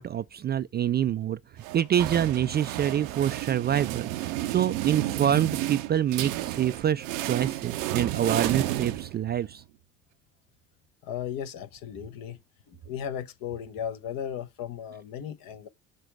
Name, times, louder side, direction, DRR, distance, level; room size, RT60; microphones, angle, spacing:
voice 1, 0.0-1.4 1.7-9.6, right 10 dB, 25° right, 0.4 m, -26 dB
sound 1, 1.6-9.5, right 15 dB, 75° right, 0.7 m, -32 dB
voice 2, 11.0-12.4 12.7-15.7, left 9 dB, 60° left, 1.1 m, -36 dB
6.7 x 3.7 x 4.6 m
hypercardioid pair, 55°, 39 cm